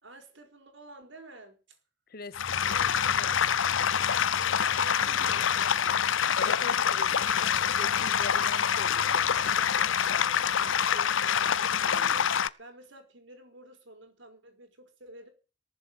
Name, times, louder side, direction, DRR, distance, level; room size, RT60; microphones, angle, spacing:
voice 1, 0.0-1.8 2.7-3.3 4.7-6.2 10.5-12.3 12.6-15.3, right 1 dB, 70° right, 4.5 m, -51 dB
voice 2, 2.1-2.4 3.2-3.4 6.4-10.5, left 3 dB, 50° left, 1.0 m, -43 dB
sound 1, 2.3-12.5, left 8 dB, 80° left, 0.7 m, -26 dB
18.5 x 7.4 x 8.0 m
head